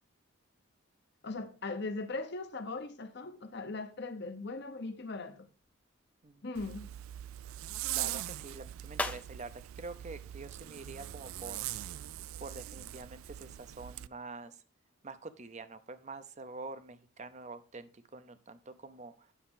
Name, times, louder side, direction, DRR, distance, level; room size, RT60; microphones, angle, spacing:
voice 1, 1.2-5.5 6.4-6.9, left 3 dB, 50° left, 0.9 m, -39 dB
sound 1, 5.5-11.3, left 2 dB, 5° left, 0.4 m, -45 dB
Zipper (clothing), 6.5-14.1, right 13 dB, 75° right, 0.3 m, -41 dB
voice 2, 7.9-11.6 11.9-12.0 12.4-14.6 15.0-19.3, right 3 dB, 35° right, 0.6 m, -46 dB
10.0 x 5.9 x 3.7 m
head